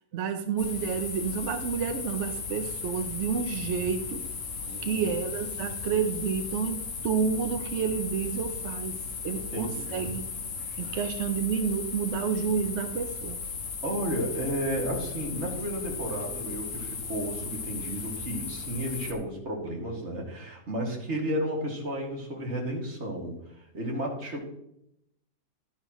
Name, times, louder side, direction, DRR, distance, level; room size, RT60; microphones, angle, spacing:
voice 1, 0.1-4.2 4.8-8.9 9.2-10.2 10.8-13.4, right 6 dB, 60° right, 7 dB, 0.7 m, -30 dB
sound 1, 0.6-19.1, left 5 dB, 85° left, 2.0 m, -36 dB
voice 2, 4.6-5.0 9.3-10.1 10.8-11.0 13.8-23.4 23.7-24.4, right 1 dB, 40° right, -1 dB, 2.4 m, -33 dB
12.0 x 10.0 x 3.0 m, 0.79 s
omnidirectional pair, 1.9 m